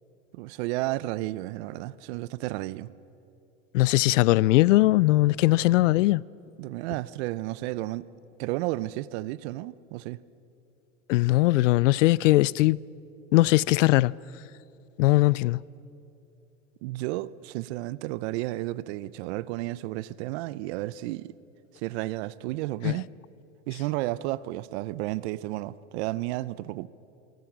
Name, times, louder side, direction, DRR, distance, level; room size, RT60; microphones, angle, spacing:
voice 1, 0.3-2.9 6.6-8.1 8.4-10.2 16.8-21.3 21.7-23.1 23.7-26.9, right 17 dB, 55° right, 0.8 m, -32 dB
voice 2, 3.7-6.2 11.1-12.8 13.3-14.1 15.0-15.6 22.8-23.0, left 18 dB, 70° left, 0.5 m, -20 dB
26.5 x 24.5 x 6.2 m
hypercardioid pair, 115°, 40 cm